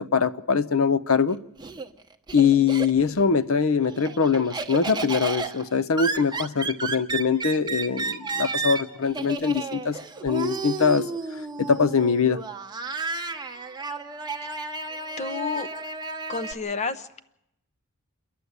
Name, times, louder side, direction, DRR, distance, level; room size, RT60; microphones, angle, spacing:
voice 1, 0.0-1.4 2.3-11.1 11.6-12.4, left 6 dB, 65° left, 0.7 m, -23 dB
Laughter, 1.1-3.3 3.6-16.5, right 4 dB, 20° right, 1.0 m, -32 dB
voice 2, 15.2-15.7 16.3-17.2, left 4 dB, 30° left, 0.8 m, -30 dB
28.5 x 11.0 x 8.1 m
head